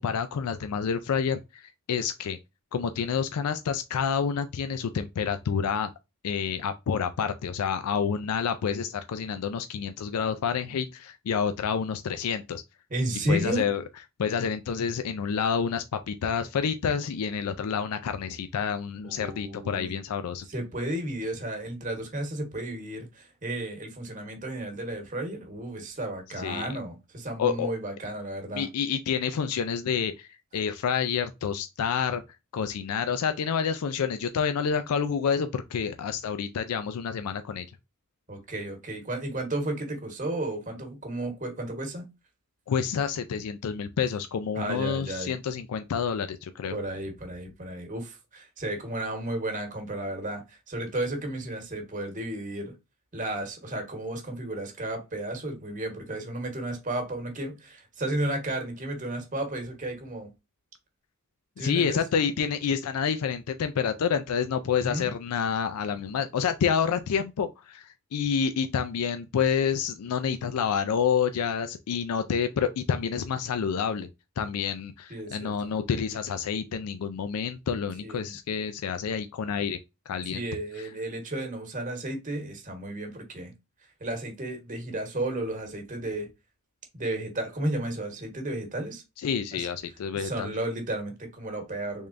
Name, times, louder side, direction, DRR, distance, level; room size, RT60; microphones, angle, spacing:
voice 1, 0.0-2.4 2.7-5.9 6.2-12.6 13.3-13.8 14.2-20.5 26.4-26.7 27.4-27.7 28.5-32.2 32.5-37.7 42.7-46.8 61.6-74.1 74.4-79.8 80.1-80.4 80.8-80.9 89.2-90.5, left 7 dB, 90° left, 0.4 m, -28 dB
voice 2, 12.9-13.7 19.0-19.9 20.4-28.7 38.3-42.1 44.5-45.3 46.7-52.7 53.1-60.3 61.6-62.0 64.8-65.1 75.1-75.7 78.0-78.3 80.3-83.5 83.8-86.3 86.9-89.0 89.5-89.7 90.1-92.1, right 1 dB, 35° right, 1.1 m, -33 dB
3.6 x 3.2 x 2.5 m
head